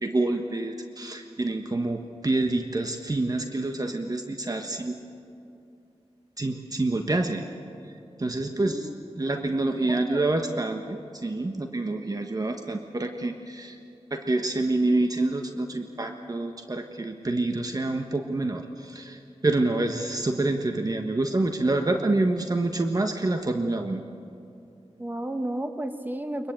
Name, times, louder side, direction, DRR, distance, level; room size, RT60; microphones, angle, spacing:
voice 1, 0.0-5.0 6.4-7.4 7.8-8.9 9.2-13.8 14.1-24.0, right 2 dB, 35° right, 5 dB, 1.4 m, -27 dB
voice 2, 9.9-10.2 25.0-26.5, right 1 dB, 15° right, 7 dB, 1.6 m, -33 dB
23.5 x 21.5 x 8.8 m, 2.6 s
wide cardioid pair, 70°, 11 cm